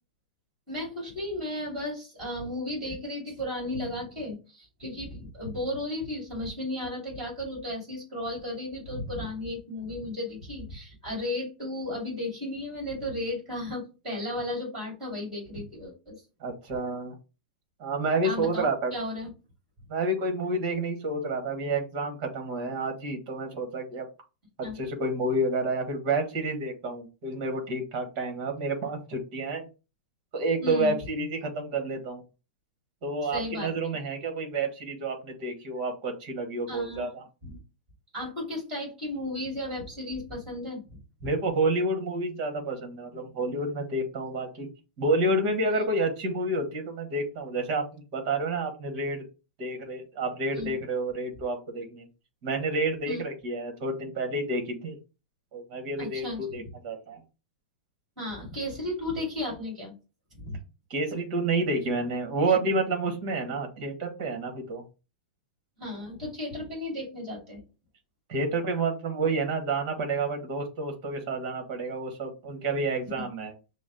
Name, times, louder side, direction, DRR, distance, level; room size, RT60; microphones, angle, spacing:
voice 1, 0.7-16.1 18.2-19.3 24.6-24.8 30.6-31.0 33.2-33.7 36.7-37.1 37.4-37.6 38.1-40.8 50.5-50.7 53.1-53.2 56.0-56.7 58.2-59.9 60.3-60.6 65.8-67.6 73.2-73.3, left 1 dB, 10° right, -2 dB, 2.4 m, -34 dB
voice 2, 16.4-17.1 17.8-18.9 19.9-24.0 24.6-29.7 30.3-32.2 33.0-37.2 41.2-44.7 45.0-49.2 49.6-52.1 52.4-55.0 55.5-57.2 60.9-64.8 68.3-73.5, right 2 dB, 30° right, 5 dB, 1.2 m, -29 dB
6.0 x 2.0 x 3.8 m, 0.31 s
supercardioid pair, 175°, 5 cm